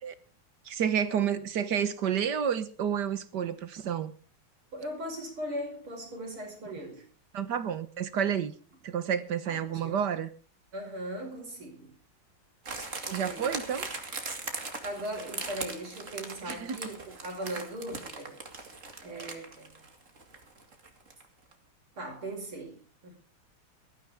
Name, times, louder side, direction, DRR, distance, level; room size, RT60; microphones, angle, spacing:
voice 1, 0.6-4.1 7.3-8.5 8.8-10.3 13.1-13.9 16.4-16.8, right 8 dB, 60° right, 1.6 m, -30 dB
voice 2, 4.7-7.0 9.5-10.0 10.7-11.9 12.9-13.5 14.8-18.4 19.0-19.8 22.0-23.2, right 1 dB, 85° right, 6.0 m, -39 dB
sound 1, 12.7-21.3 21.5-21.6, right 3 dB, 35° right, 2.5 m, -40 dB
19.5 x 13.5 x 3.6 m
omnidirectional pair, 2.3 m